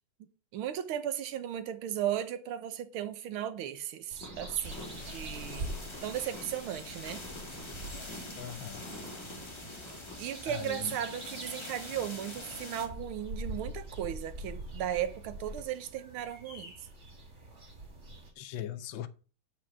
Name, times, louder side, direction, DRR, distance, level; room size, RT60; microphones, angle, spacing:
voice 1, 0.5-7.2 10.2-16.7, right 10 dB, 85° right, 1.7 m, -36 dB
sound 1, 4.1-18.3, right 1 dB, 35° right, 2.5 m, -45 dB
sound 2, 4.2-10.2, equal, ahead, 5.2 m, -48 dB
sound 3, 4.6-12.9, left 2 dB, 20° left, 0.9 m, -45 dB
voice 2, 8.4-8.8 10.4-11.0 18.4-19.1, left 11 dB, 70° left, 1.4 m, -40 dB
8.7 x 4.9 x 7.2 m
omnidirectional pair, 2.3 m